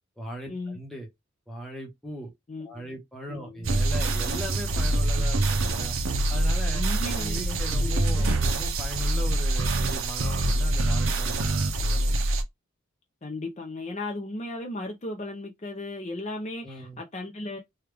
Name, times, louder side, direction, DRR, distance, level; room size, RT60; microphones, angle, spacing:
voice 1, 0.2-1.1 1.5-2.3 2.6-6.0 6.3-6.8 7.2-12.0 16.6-17.0, equal, ahead, 0.9 m, -38 dB
voice 2, 2.5-3.0 3.3-3.7 6.7-8.2 13.2-17.6, left 2 dB, 35° left, 0.5 m, -36 dB
sound 1, 3.6-12.4, right 2 dB, 70° right, 0.6 m, -25 dB
3.4 x 2.3 x 3.3 m
head